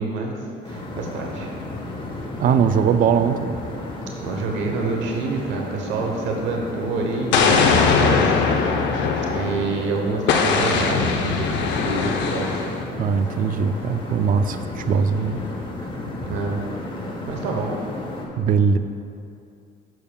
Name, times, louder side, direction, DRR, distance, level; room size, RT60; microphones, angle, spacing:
voice 1, 0.0-1.5 4.2-8.3 8.6-8.8 9.2-12.7 16.2-16.6 17.3-17.7, right 3 dB, 80° right, 1 dB, 0.9 m, -27 dB
sound 1, 0.6-18.3, left 2 dB, 25° left, 1.2 m, -33 dB
voice 2, 2.4-3.6 13.0-15.5 18.4-18.8, right 6 dB, 50° right, 10 dB, 0.4 m, -20 dB
Explosion, 7.3-9.8 10.3-12.8, left 5 dB, 80° left, 0.6 m, -20 dB
10.5 x 6.9 x 2.3 m, 2.6 s
cardioid pair, 125°, 18 cm